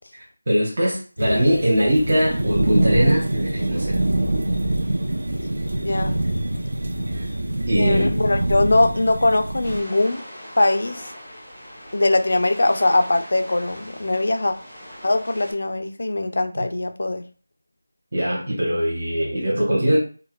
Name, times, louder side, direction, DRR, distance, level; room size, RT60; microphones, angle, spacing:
voice 1, 0.1-4.0 7.1-7.2 7.7-8.1 18.1-20.0, equal, 30° right, -5 dB, 0.7 m, -21 dB
sound 1, 1.2-9.8, right 1 dB, 75° right, 0.5 m, -24 dB
voice 2, 5.8-6.2 7.8-10.2 10.6-11.1 11.9-14.5 15.0-17.2, left 2 dB, 50° left, 7 dB, 0.3 m, -21 dB
sound 2, 9.6-15.5, equal, 5° left, 0.7 m, -40 dB
4.2 x 2.1 x 2.2 m, 0.38 s
figure-of-eight pair, 180°, 0 cm